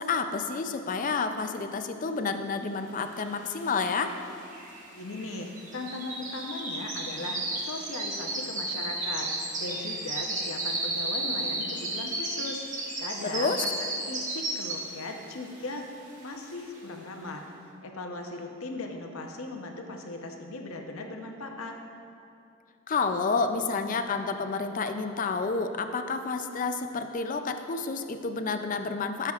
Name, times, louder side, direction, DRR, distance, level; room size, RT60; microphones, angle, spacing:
voice 1, 0.0-4.1 13.3-13.6 22.9-29.3, left 4 dB, 40° left, 7 dB, 0.4 m, -29 dB
sound 1, 3.3-3.4 3.6-15.1 15.5-15.8 16.2-16.3, right 2 dB, 35° right, 1.3 m, -33 dB
voice 2, 4.9-9.3 9.6-15.9 16.2-17.4 17.8-21.8, left 2 dB, 75° left, 3 dB, 0.8 m, -38 dB
14.0 x 6.6 x 2.4 m, 2.6 s
head